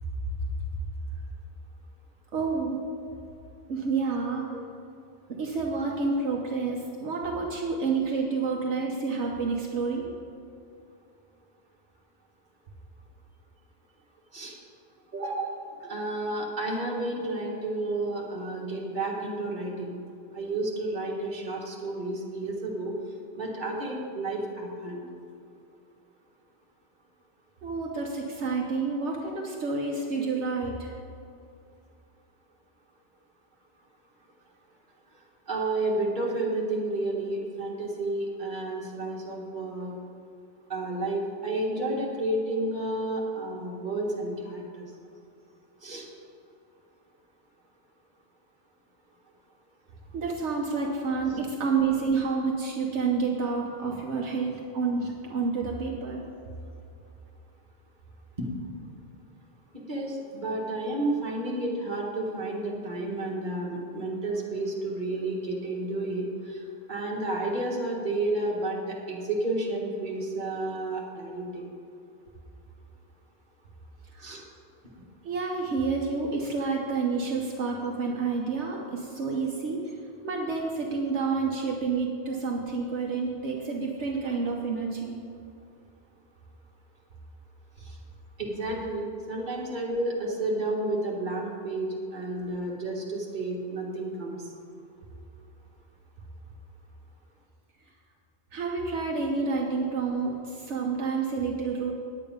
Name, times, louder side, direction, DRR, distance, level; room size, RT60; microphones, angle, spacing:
voice 1, 2.3-2.8 3.7-4.5 5.4-10.1 27.6-30.9 50.1-56.2 74.1-74.5 75.2-85.2 98.5-101.9, right 4 dB, 75° right, -1 dB, 1.3 m, -29 dB
voice 2, 15.1-20.0 20.3-22.9 23.3-25.1 35.5-40.0 40.7-44.9 45.8-46.1 58.4-58.5 59.7-71.7 74.2-74.4 87.8-88.0 88.4-94.5, right 2 dB, 45° right, -2 dB, 1.8 m, -31 dB
9.5 x 8.8 x 5.3 m, 2.5 s
omnidirectional pair, 1.2 m